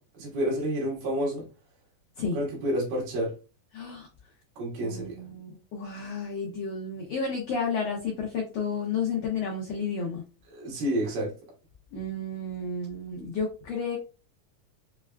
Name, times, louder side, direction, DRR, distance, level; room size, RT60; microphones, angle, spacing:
voice 1, 0.1-1.5 2.3-3.3 4.6-5.2 10.5-11.3, equal, 80° right, 3.2 m, -29 dB
voice 2, 3.7-4.1 4.8-10.2 11.9-14.0, left 4 dB, 85° left, 1.4 m, -32 dB
6.2 x 2.3 x 2.2 m
omnidirectional pair, 3.9 m